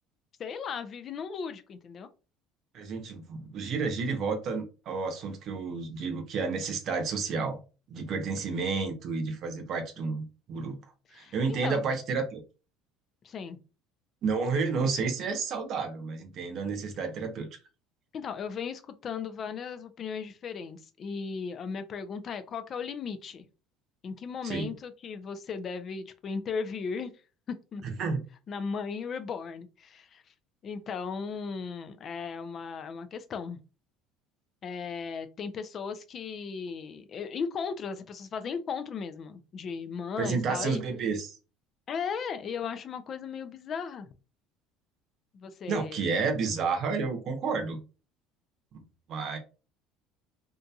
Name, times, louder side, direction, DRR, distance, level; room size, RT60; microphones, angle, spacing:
voice 1, 0.4-2.1 11.1-11.8 13.2-13.6 18.1-23.5 24.0-27.1 27.7-27.8 28.5-30.2 30.6-33.6 34.6-40.8 41.9-44.1 45.3-46.0, left 6 dB, 40° left, 0.4 m, -36 dB
voice 2, 2.7-7.6 7.9-10.8 11.1-12.4 14.2-17.5 24.4-24.7 27.8-28.2 40.2-41.3 45.7-47.8 48.7-48.8 49.1-49.4, right 4 dB, 50° right, 0.8 m, -31 dB
2.7 x 2.6 x 2.3 m
supercardioid pair, 105°, 0 cm